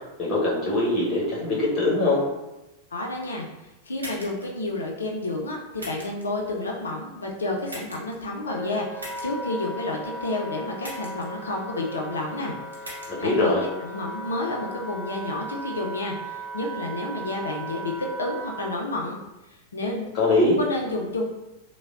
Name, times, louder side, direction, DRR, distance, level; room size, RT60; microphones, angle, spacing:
voice 1, 0.2-2.2 13.1-13.6 20.1-20.6, left 2 dB, 25° left, -5 dB, 1.0 m, -22 dB
voice 2, 2.9-3.5 3.9-12.5 12.9-19.2 19.5-20.1 20.4-21.3, left 2 dB, 70° left, 0 dB, 0.4 m, -30 dB
sound 1, 4.0-4.5 5.8-6.2 7.7-8.1 9.0-9.3 10.8-11.3 12.7-13.1, equal, 75° right, 0.6 m, -39 dB
Wind instrument woodwind instrument, 8.5-18.8, right 1 dB, ahead, 0.6 m, -37 dB
3.2 x 2.0 x 2.3 m, 0.99 s
figure-of-eight pair, 90°, 0 cm